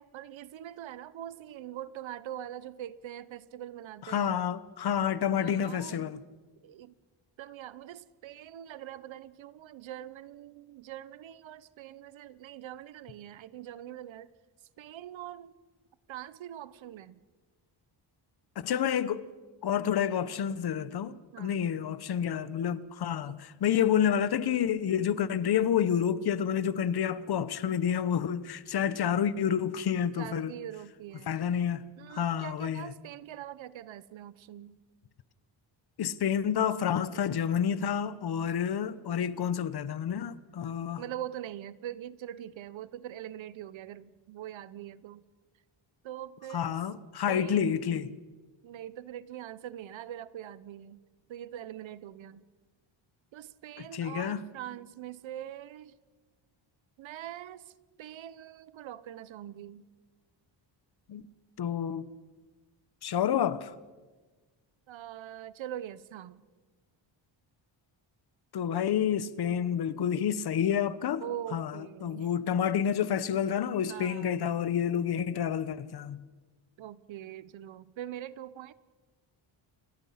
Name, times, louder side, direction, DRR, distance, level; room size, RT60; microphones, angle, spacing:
voice 1, 0.0-4.4 5.4-6.1 6.6-7.0 7.4-14.3 14.8-15.5 16.1-17.2 21.3-21.7 23.3-23.4 30.2-31.5 32.0-34.8 41.0-45.2 46.0-46.8 47.3-47.7 48.6-51.0 51.3-52.4 53.3-55.9 57.0-57.7 58.0-59.9 64.9-66.4 71.2-72.3 73.9-74.5 76.8-78.7, right 11 dB, 70° right, 1.0 m, -43 dB
voice 2, 4.1-6.2 18.6-19.2 19.6-30.5 31.3-31.8 32.1-32.9 36.0-41.0 46.5-48.1 53.8-54.4 61.1-61.2 61.6-62.0 63.0-63.7 68.5-71.2 71.5-71.7 72.0-76.2, left 8 dB, 50° left, 1.1 m, -29 dB
29.5 x 21.5 x 5.8 m
wide cardioid pair, 155°, 47 cm